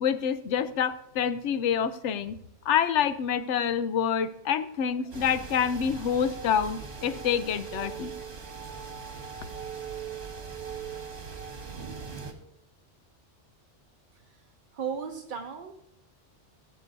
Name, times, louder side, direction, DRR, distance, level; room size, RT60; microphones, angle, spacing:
voice 1, 0.0-2.4 2.7-8.1, left 8 dB, 85° left, 12 dB, 0.9 m, -27 dB
sound 1, 5.1-12.3, right 6 dB, 65° right, 1.6 m, -40 dB
voice 2, 14.7-15.7, right 6 dB, 50° right, 4 dB, 0.8 m, -35 dB
16.5 x 7.7 x 2.7 m, 0.75 s
omnidirectional pair, 1.2 m